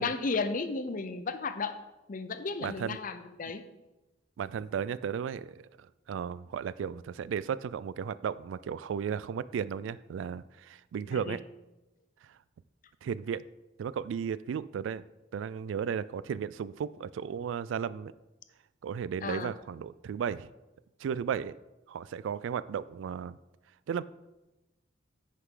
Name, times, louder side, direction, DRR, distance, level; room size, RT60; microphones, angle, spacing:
voice 1, 0.0-1.8 2.1-3.6 11.1-11.4 19.2-19.5, left 4 dB, 45° left, 10 dB, 0.6 m, -34 dB
voice 2, 2.6-3.0 4.4-5.6 6.1-11.4 13.0-13.4 13.8-15.0 15.3-18.1 18.8-20.5 21.0-21.6 21.9-23.4 23.9-24.0, right 7 dB, 85° right, 18 dB, 0.3 m, -34 dB
9.6 x 6.6 x 3.8 m, 1.0 s
head